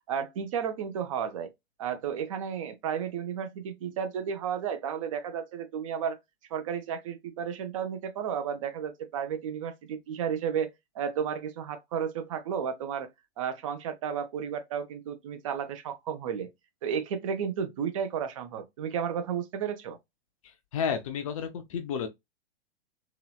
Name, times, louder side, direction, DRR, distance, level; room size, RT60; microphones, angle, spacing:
voice 1, 0.1-1.5 1.8-6.2 6.5-10.7 10.9-13.1 13.4-16.5 16.8-20.0, right 7 dB, 30° right, 0.5 m, -33 dB
voice 2, 20.7-22.1, left 7 dB, 35° left, 0.5 m, -31 dB
2.9 x 2.9 x 2.3 m
figure-of-eight pair, 110°, 32 cm